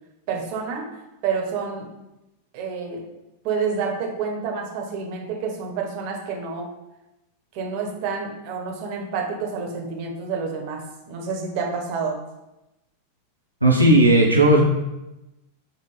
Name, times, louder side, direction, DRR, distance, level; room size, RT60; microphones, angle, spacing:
voice 1, 0.3-1.9 2.5-3.1 3.4-6.7 7.5-12.2, right 5 dB, 45° right, 1 dB, 0.8 m, -29 dB
voice 2, 13.6-14.6, right 1 dB, 90° right, -2 dB, 0.5 m, -15 dB
5.2 x 2.1 x 3.1 m, 0.96 s
figure-of-eight pair, 90°, 0 cm